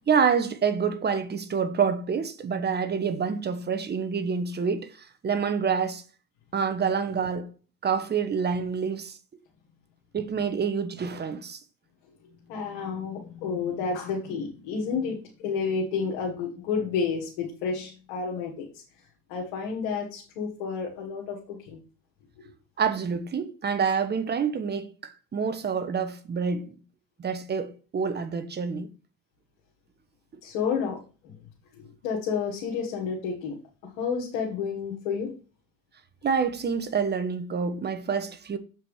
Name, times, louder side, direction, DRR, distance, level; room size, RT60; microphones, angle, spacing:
voice 1, 0.1-6.0 6.5-7.5 7.8-9.2 10.1-11.6 22.8-26.7 27.2-28.9 30.3-30.4 36.2-38.6, right 6 dB, 35° right, 1.2 m, -27 dB
voice 2, 12.3-18.6 19.3-21.8 30.4-31.4 31.8-33.6 34.0-35.3, left 5 dB, 90° left, 1.6 m, -30 dB
7.3 x 4.7 x 4.8 m
supercardioid pair, 80°, 29 cm